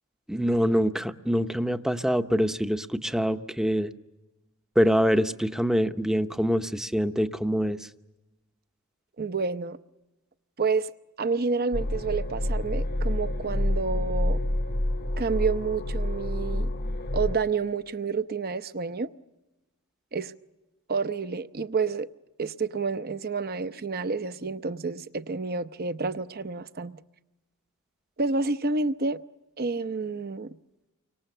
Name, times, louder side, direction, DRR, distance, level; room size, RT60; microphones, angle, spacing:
voice 1, 0.3-3.9 4.8-7.9, equal, ahead, 0.8 m, -25 dB
voice 2, 9.2-9.8 10.6-10.9 11.2-14.4 15.2-16.7 17.1-19.1 20.1-20.3 20.9-22.1 22.4-27.0 28.2-29.2 29.6-30.6, right 4 dB, 45° right, 0.8 m, -29 dB
sound 1, 11.7-17.4, left 1 dB, 45° left, 0.9 m, -28 dB
30.0 x 24.5 x 6.7 m
head